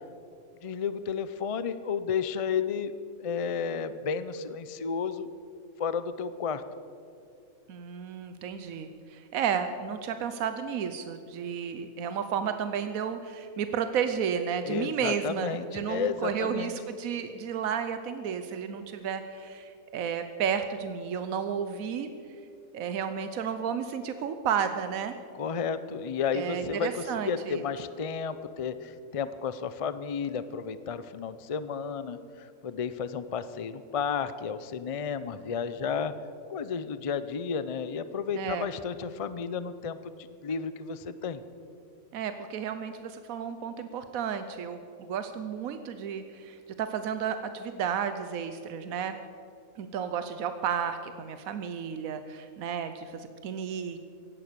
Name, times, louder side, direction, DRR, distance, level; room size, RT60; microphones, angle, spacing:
voice 1, 0.6-2.9 3.2-5.3 5.8-6.6 14.7-16.7 25.4-36.1 36.5-40.1 40.4-41.4, left 6 dB, 50° left, 13 dB, 0.4 m, -32 dB
voice 2, 7.7-22.1 22.7-25.1 26.3-27.6 38.3-38.7 42.1-49.2 49.8-54.0, right 7 dB, 85° right, 9 dB, 1.2 m, -32 dB
16.5 x 11.0 x 6.8 m, 2.5 s
omnidirectional pair, 1.4 m